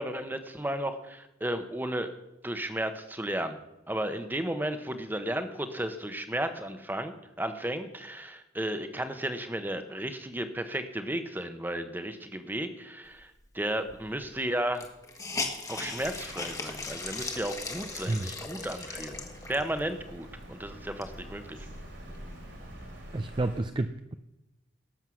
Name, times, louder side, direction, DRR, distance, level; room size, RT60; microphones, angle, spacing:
voice 1, 0.0-2.1 2.4-3.6 3.9-14.9 15.7-21.7, right 1 dB, 10° right, 9 dB, 0.9 m, -34 dB
Hiss, 13.9-14.0 14.2-14.3 14.7-19.8 20.3-20.4 20.8-22.2, left 3 dB, 15° left, 1.3 m, -38 dB
Bird vocalization bird call bird song, 16.0-23.6, right 1 dB, 75° right, 3.2 m, -47 dB
voice 2, 23.1-24.1, right 2 dB, 25° right, 9 dB, 0.4 m, -30 dB
18.0 x 7.6 x 6.3 m, 0.94 s
head